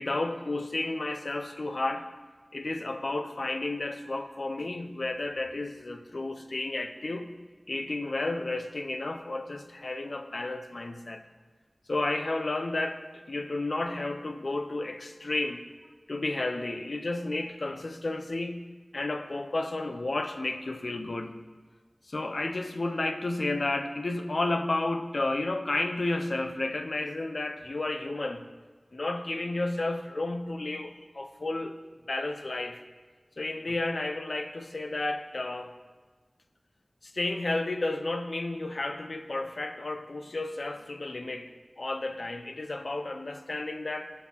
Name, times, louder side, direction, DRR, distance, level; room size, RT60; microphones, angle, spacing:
voice 1, 0.0-2.0 2.5-7.3 7.7-11.3 11.9-15.6 16.1-18.7 18.9-21.4 22.1-28.5 28.9-31.8 32.1-32.8 33.4-35.7 37.0-44.1, left 2 dB, 80° left, 7 dB, 0.4 m, -32 dB
7.1 x 6.2 x 2.9 m, 1.4 s
wide cardioid pair, 55°, 0 cm